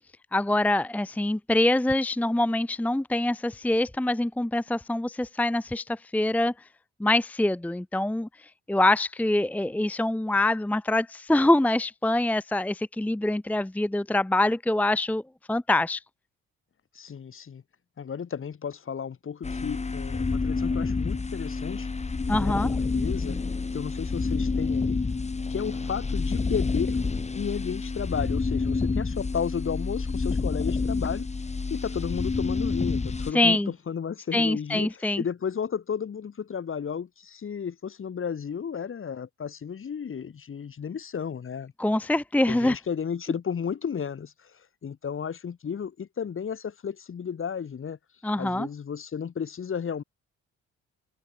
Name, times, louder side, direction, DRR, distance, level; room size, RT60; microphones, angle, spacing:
voice 1, 0.3-6.5 7.0-8.3 8.7-15.2 15.5-16.0 22.3-22.8 33.3-33.7 34.3-35.2 41.8-42.8 48.2-48.7, left 1 dB, 5° left, 0.8 m, -24 dB
voice 2, 16.9-17.6 18.0-21.9 22.4-23.4 23.7-25.0 25.5-27.0 27.3-31.3 31.7-41.7 42.5-48.0 48.4-50.0, left 7 dB, 45° left, 2.5 m, -33 dB
sound 1, 19.4-33.3, left 4 dB, 20° left, 1.6 m, -28 dB
cardioid pair, 90°, 30 cm